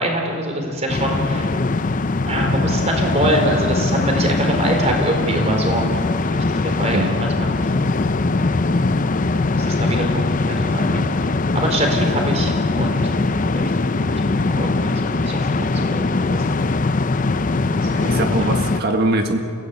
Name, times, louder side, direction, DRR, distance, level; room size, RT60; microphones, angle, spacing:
voice 1, 0.0-1.5 2.3-5.9 6.3-7.5 9.3-11.0 11.5-13.0 13.6-13.7 14.0-16.4 18.0-18.3, right 1 dB, 30° right, 2 dB, 4.1 m, -24 dB
sound 1, 0.9-18.8, left 3 dB, 35° left, 0.6 m, -21 dB
voice 2, 6.9-7.2 17.8-19.4, right 1 dB, 45° right, 4 dB, 1.8 m, -22 dB
28.5 x 17.0 x 8.2 m, 2.3 s
head